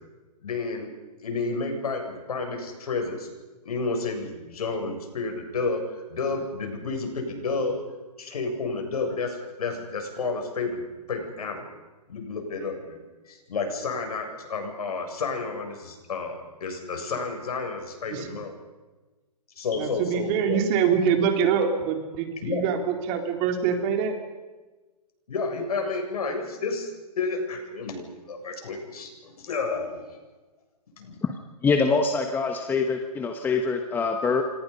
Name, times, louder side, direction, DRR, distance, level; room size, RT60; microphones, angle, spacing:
voice 1, 0.4-0.9 1.2-3.3 3.6-5.8 6.1-7.8 8.2-10.8 11.1-11.6 12.1-13.0 13.3-18.5 19.6-20.6 22.4-22.6 25.3-26.9 27.2-30.2 31.0-31.2, left 4 dB, 65° left, 4 dB, 7.6 m, -31 dB
voice 2, 19.8-24.2, right 7 dB, 30° right, 5 dB, 3.5 m, -24 dB
voice 3, 31.6-34.4, left 4 dB, 10° left, 5 dB, 1.4 m, -24 dB
29.0 x 25.5 x 5.6 m, 1.2 s
hypercardioid pair, 145°, 20 cm